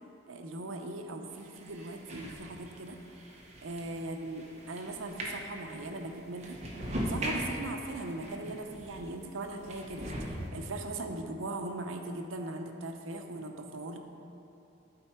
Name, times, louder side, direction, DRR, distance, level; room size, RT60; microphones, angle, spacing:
voice 1, 0.3-3.0 3.6-6.6 7.1-14.0, right 2 dB, 85° right, 4 dB, 0.7 m, -39 dB
sound 1, 1.3-9.1 9.6-10.5, equal, 35° right, 1.0 m, -40 dB
11.5 x 4.5 x 4.4 m, 2.8 s
head